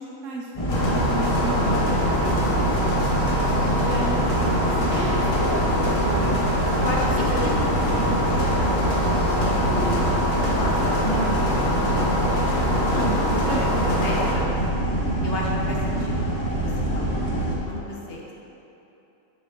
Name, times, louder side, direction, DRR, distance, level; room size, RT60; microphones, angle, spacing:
voice 1, 0.0-2.9 3.8-4.4 4.6-6.4 7.2-10.2 11.0-11.4 11.7-12.6 13.1-13.8, right 2 dB, 70° right, -3 dB, 1.1 m, -33 dB
sound 1, 0.6-17.6, right 1 dB, 30° left, 0.8 m, -25 dB
sound 2, 0.7-14.3, left 1 dB, 80° left, 1.4 m, -25 dB
voice 2, 3.6-3.9 6.8-7.8 10.6-11.0 12.8-13.6 14.0-14.8 15.2-16.3 16.5-18.3, left 1 dB, 50° left, -3 dB, 1.1 m, -32 dB
7.1 x 6.0 x 2.9 m, 3.0 s
omnidirectional pair, 1.4 m